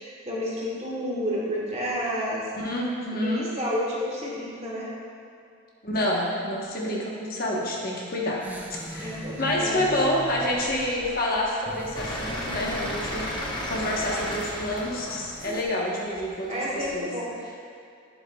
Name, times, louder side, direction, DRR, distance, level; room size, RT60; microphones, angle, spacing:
voice 1, 0.0-2.5 3.1-4.9 9.0-9.8 16.5-17.3, equal, 30° right, -5 dB, 1.4 m, -30 dB
voice 2, 2.6-3.5 5.8-8.4 8.7-13.2 13.7-17.1, left 1 dB, 45° left, -3 dB, 1.1 m, -28 dB
sound 1, 8.4-15.6, equal, 10° right, 0.4 m, -41 dB
sound 2, 11.9-16.9, left 1 dB, 20° left, 0.8 m, -33 dB
10.5 x 7.4 x 2.3 m, 2.5 s
head